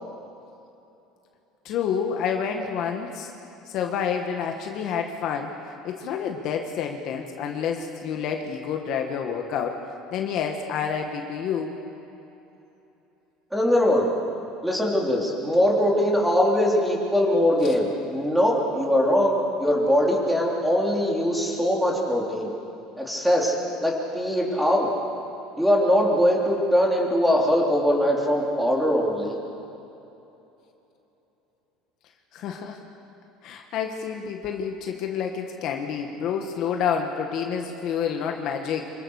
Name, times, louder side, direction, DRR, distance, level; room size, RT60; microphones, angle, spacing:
voice 1, 1.7-3.3 3.7-5.6 5.8-9.8 10.1-11.8 32.3-32.8 33.4-38.9, left 7 dB, 50° left, 3 dB, 1.8 m, -28 dB
voice 2, 13.5-14.1 14.6-22.5 23.0-23.6 23.8-24.9 25.6-29.4, equal, ahead, -2 dB, 3.7 m, -21 dB
26.5 x 25.5 x 6.7 m, 2.9 s
cardioid pair, 150°, 0 cm